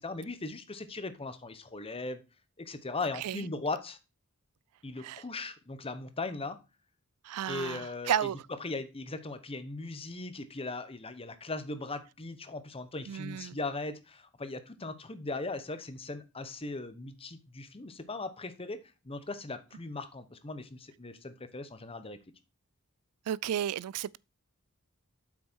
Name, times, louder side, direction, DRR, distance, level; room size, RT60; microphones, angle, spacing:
voice 1, 0.0-2.2 2.6-4.0 4.8-6.6 7.5-8.1 8.6-18.8 19.0-22.2, left 3 dB, 25° left, 0.9 m, -38 dB
voice 2, 3.1-3.5 5.0-5.2 7.2-8.4 13.1-13.6 23.3-24.2, right 9 dB, 85° right, 0.3 m, -33 dB
8.1 x 6.2 x 4.5 m
head